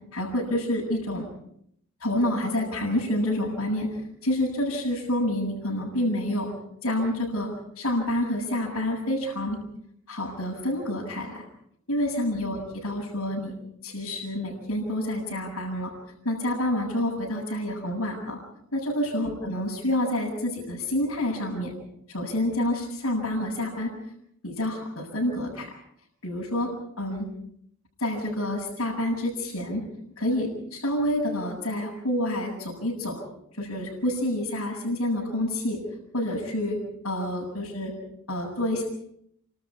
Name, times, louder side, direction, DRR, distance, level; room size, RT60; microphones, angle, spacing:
voice 1, 0.1-1.3 2.0-3.9 4.2-6.5 6.8-7.5 7.8-9.6 10.1-11.5 11.9-13.5 13.8-15.9 16.2-18.4 18.7-21.7 22.1-23.9 24.4-25.7 26.2-26.7 27.0-27.3 28.0-29.8 30.2-33.2 33.5-35.8 36.1-36.8 37.0-37.9 38.3-38.8, left 1 dB, 80° left, -2 dB, 7.9 m, -28 dB
29.0 x 26.5 x 4.8 m, 0.71 s
head